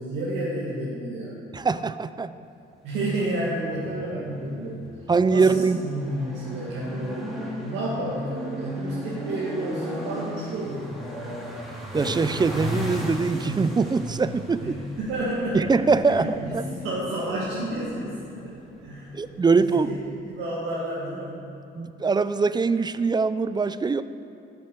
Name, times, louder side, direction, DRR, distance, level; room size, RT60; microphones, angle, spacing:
voice 1, 0.0-1.5 2.8-4.8 5.3-11.0 14.6-15.7 16.1-20.0 20.3-21.5, right 1 dB, 90° right, -7 dB, 1.9 m, -31 dB
voice 2, 1.5-2.3 5.1-5.8 11.9-14.8 15.5-16.7 19.1-19.9 21.8-24.0, right 4 dB, 20° right, 13 dB, 0.4 m, -23 dB
sound 1, 3.5-20.1, equal, ahead, 2.8 m, -36 dB
13.0 x 6.9 x 6.6 m, 2.7 s
cardioid pair, 90°, 20 cm